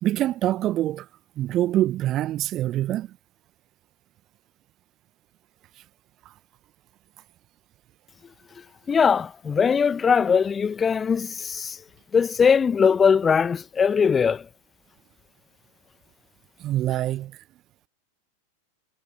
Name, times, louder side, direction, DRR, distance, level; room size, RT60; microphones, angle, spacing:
voice 1, 0.0-1.1 1.4-3.1 16.6-17.3, right 14 dB, 35° right, 1.4 m, -25 dB
voice 2, 8.9-11.8 12.1-14.4, left 6 dB, 20° left, 1.1 m, -20 dB
figure-of-eight pair, 90°, 0 cm